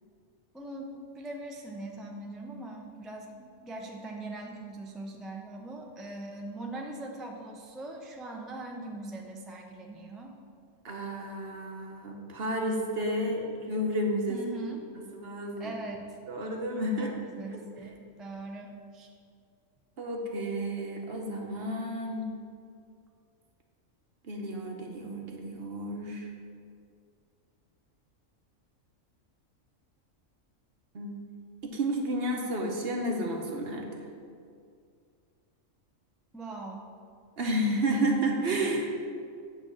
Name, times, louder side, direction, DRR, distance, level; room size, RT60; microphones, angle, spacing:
voice 1, 0.5-10.3 14.3-14.9 15.6-16.1 16.9-19.1 36.3-36.9, right 2 dB, ahead, 0 dB, 0.4 m, -41 dB
voice 2, 10.8-14.4 15.1-15.8 16.3-17.1 20.0-22.3 24.2-26.3 30.9-31.1 31.6-33.9 37.4-38.9, right 1 dB, 50° right, 1 dB, 1.1 m, -31 dB
8.9 x 3.6 x 6.9 m, 2.3 s
omnidirectional pair, 1.4 m